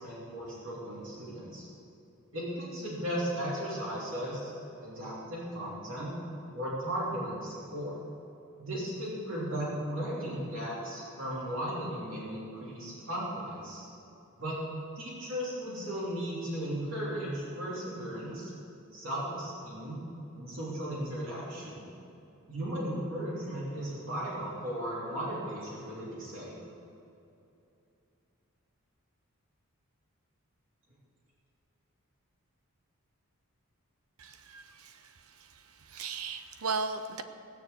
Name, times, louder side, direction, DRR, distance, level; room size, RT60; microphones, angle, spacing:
voice 1, 0.0-1.6 2.3-4.5 4.8-6.1 6.5-7.9 8.6-13.8 14.4-14.6 14.9-18.5 18.9-20.0 20.3-21.8 22.5-26.5, equal, 60° right, -7 dB, 3.4 m, -36 dB
voice 2, 34.2-35.1 35.4-35.5 35.9-37.2, right 4 dB, 85° right, 9 dB, 0.9 m, -36 dB
18.0 x 7.1 x 8.1 m, 2.7 s
head